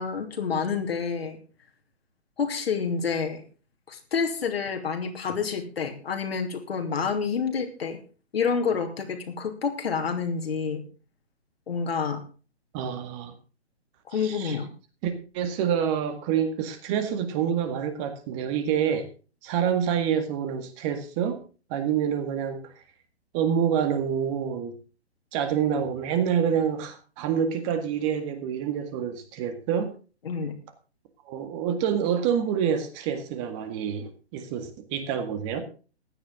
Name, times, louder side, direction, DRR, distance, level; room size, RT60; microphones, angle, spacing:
voice 1, 0.0-1.4 2.4-3.4 3.9-8.0 8.3-10.8 11.7-12.2 14.1-14.7 30.2-30.5, left 6 dB, 60° left, 5 dB, 2.9 m, -28 dB
voice 2, 12.7-13.3 14.1-14.6 15.0-19.1 19.4-21.4 21.7-22.7 23.3-24.7 25.3-29.9 31.3-35.6, right 8 dB, 30° right, 8 dB, 1.9 m, -27 dB
15.5 x 10.5 x 3.7 m, 0.36 s
figure-of-eight pair, 130°, 33 cm